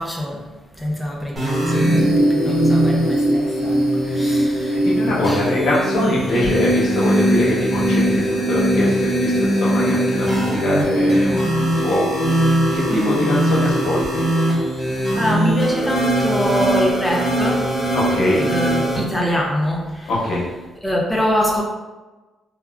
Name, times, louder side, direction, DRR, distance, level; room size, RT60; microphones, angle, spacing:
voice 1, 0.0-4.8 5.2-5.5 12.9-13.3 14.9-17.8 18.5-20.1 20.8-21.6, equal, 5° left, -2 dB, 0.6 m, -24 dB
sound 1, 1.4-19.0, right 1 dB, 25° right, 1.1 m, -20 dB
voice 2, 4.7-14.2 17.9-18.5 20.1-20.4, left 1 dB, 70° left, -5 dB, 1.0 m, -23 dB
3.4 x 2.3 x 2.2 m, 1.2 s
cardioid pair, 90°, 0 cm